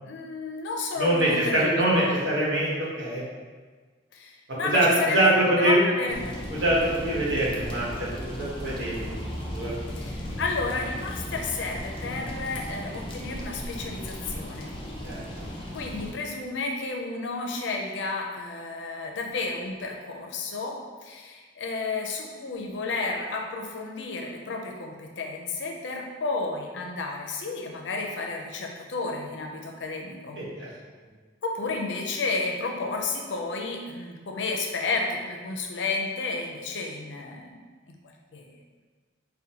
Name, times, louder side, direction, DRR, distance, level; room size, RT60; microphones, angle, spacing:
voice 1, 0.0-2.2 4.1-6.2 9.9-14.7 15.7-20.8 21.0-30.4 31.4-37.6 37.9-38.0 38.3-38.5, left 3 dB, 85° left, 1 dB, 0.5 m, -32 dB
voice 2, 1.0-3.2 4.7-5.8 6.5-8.1 8.4-9.1 9.5-9.8 15.0-15.5 30.4-30.7, right 1 dB, 90° right, -6 dB, 1.1 m, -24 dB
sound 1, 6.1-16.1, equal, 30° left, 0.5 m, -36 dB
5.0 x 2.2 x 2.8 m, 1.4 s
head